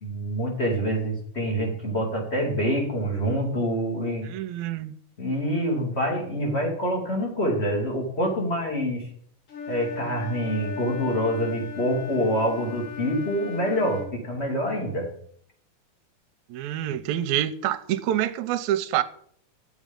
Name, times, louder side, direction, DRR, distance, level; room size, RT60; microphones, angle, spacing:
voice 1, 0.0-4.3 5.2-9.1 9.7-15.1, equal, 20° left, 2.3 m, -26 dB
voice 2, 4.2-4.9 16.5-19.0, right 12 dB, 80° right, 1.9 m, -27 dB
Wind instrument woodwind instrument, 9.5-14.1, left 5 dB, 50° left, 2.4 m, -37 dB
11.0 x 7.4 x 5.3 m
omnidirectional pair, 3.5 m